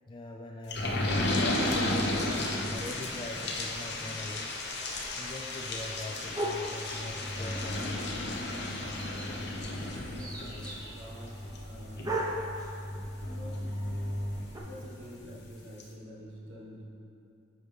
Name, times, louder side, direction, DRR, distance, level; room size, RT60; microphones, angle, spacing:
voice 1, 0.1-2.2 2.7-4.6 5.2-8.0, left 1 dB, 25° left, 1 dB, 0.3 m, -42 dB
sound 1, 0.7-15.0 15.4-15.5 15.8-15.9, left 1 dB, 60° left, 0.9 m, -34 dB
sound 2, 0.8-14.6, right 1 dB, 20° right, 0.8 m, -42 dB
voice 2, 9.7-12.1 13.2-13.7 14.7-16.9, equal, 70° right, -5 dB, 1.3 m, -47 dB
9.3 x 6.5 x 3.3 m, 2.6 s
head